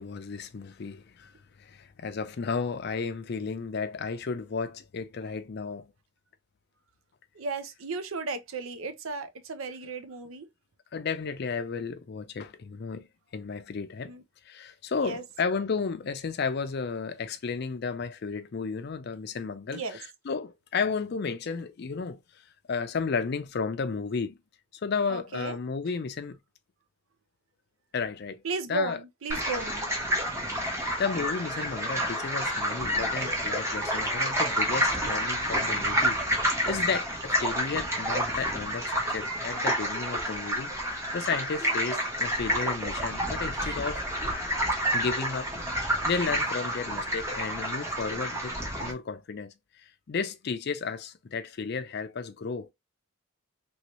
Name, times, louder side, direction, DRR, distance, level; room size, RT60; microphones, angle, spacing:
voice 1, 0.0-1.3 1.6-5.9 10.9-13.1 13.3-14.1 14.5-22.2 22.7-24.4 24.8-26.4 27.9-28.4 28.7-29.0 31.0-44.0 44.9-45.6 46.0-52.7, left 5 dB, 50° left, 0.4 m, -33 dB
voice 2, 7.4-10.5 14.1-14.2 15.0-15.2 19.7-20.0 25.1-25.6 28.4-29.9, right 3 dB, 75° right, 0.6 m, -34 dB
sound 1, 29.3-48.9, equal, 15° right, 0.9 m, -29 dB
3.0 x 3.0 x 3.0 m
head